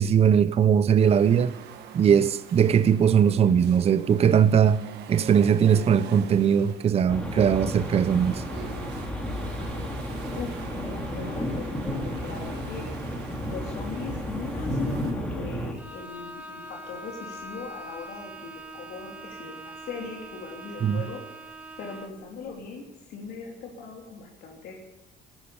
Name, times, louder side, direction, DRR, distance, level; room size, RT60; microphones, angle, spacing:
voice 1, 0.0-1.5 1.9-4.8 5.1-8.4 20.8-21.0, right 8 dB, 35° right, 0.6 m, -20 dB
sound 1, 1.0-15.1, right 8 dB, 80° right, 1.6 m, -43 dB
sound 2, 7.1-15.7, equal, 5° left, 2.9 m, -32 dB
voice 2, 10.3-13.1 13.4-21.3 21.8-24.7, left 4 dB, 70° left, 3.2 m, -39 dB
Bowed string instrument, 15.8-22.3, right 1 dB, 10° right, 1.7 m, -42 dB
14.5 x 12.5 x 7.0 m
cardioid pair, 110°, 17 cm